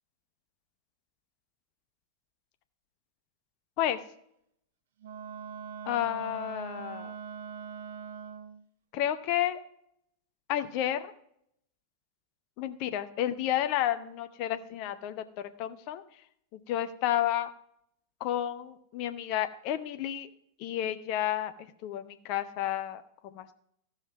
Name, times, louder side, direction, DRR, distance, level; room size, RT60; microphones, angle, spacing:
Wind instrument woodwind instrument, 5.0-8.7, right 7 dB, 60° right, 0.5 m, -42 dB
voice 1, 5.8-7.1 8.9-9.6 10.5-11.1 12.6-16.0 16.5-17.5 18.2-20.3 20.6-21.5 21.8-23.5, left 12 dB, 45° left, 10 dB, 0.8 m, -31 dB
14.5 x 5.6 x 4.6 m, 0.72 s
figure-of-eight pair, 90°, 0 cm